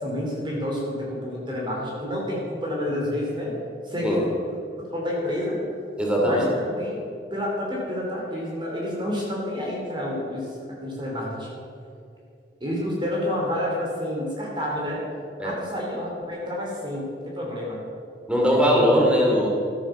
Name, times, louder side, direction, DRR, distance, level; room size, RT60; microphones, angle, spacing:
voice 1, 0.0-3.5 3.8-4.4 4.9-5.6 6.2-7.0 7.3-11.5 12.6-15.0 15.4-17.8, left 1 dB, 25° right, -3 dB, 2.9 m, -29 dB
voice 2, 6.0-6.5 15.4-15.5 18.3-19.5, equal, 5° right, -2 dB, 2.6 m, -20 dB
14.0 x 9.7 x 6.5 m, 2.5 s
head